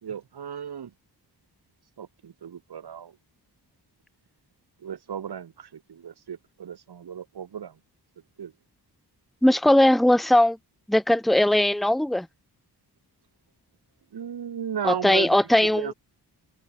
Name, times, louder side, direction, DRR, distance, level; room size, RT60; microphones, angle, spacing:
voice 1, 0.0-0.9 2.0-3.2 4.8-7.8 8.4-8.5 14.1-15.9, right 8 dB, 75° right, 3.1 m, -35 dB
voice 2, 9.4-10.6 10.9-12.3 14.8-15.9, left 1 dB, ahead, 1.0 m, -19 dB
wide cardioid pair, 115°, 39 cm